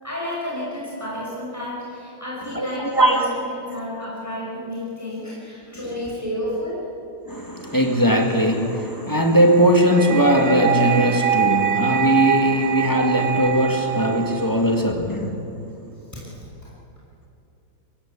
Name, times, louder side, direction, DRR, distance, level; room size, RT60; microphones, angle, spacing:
voice 1, 0.0-6.8, left 1 dB, 5° right, -6 dB, 5.9 m, -31 dB
voice 2, 2.5-3.3 7.3-15.4, equal, 10° left, 3 dB, 1.9 m, -19 dB
sound 1, 9.7-14.7, right 9 dB, 75° right, 2.0 m, -24 dB
23.5 x 16.0 x 8.7 m, 2.7 s
omnidirectional pair, 2.3 m